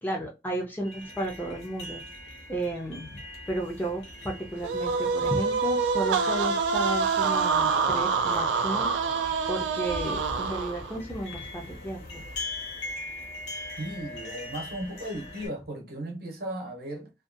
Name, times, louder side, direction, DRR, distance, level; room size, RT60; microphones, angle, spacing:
voice 1, 0.0-2.0 2.5-3.2 3.5-8.9 9.5-12.2, right 1 dB, 10° left, 0.4 m, -33 dB
sound 1, 0.8-15.5, left 2 dB, 85° left, 0.7 m, -42 dB
sound 2, 4.6-11.0, right 5 dB, 85° right, 0.3 m, -26 dB
voice 2, 13.8-17.1, right 1 dB, 55° right, 0.8 m, -36 dB
2.5 x 2.2 x 2.4 m
head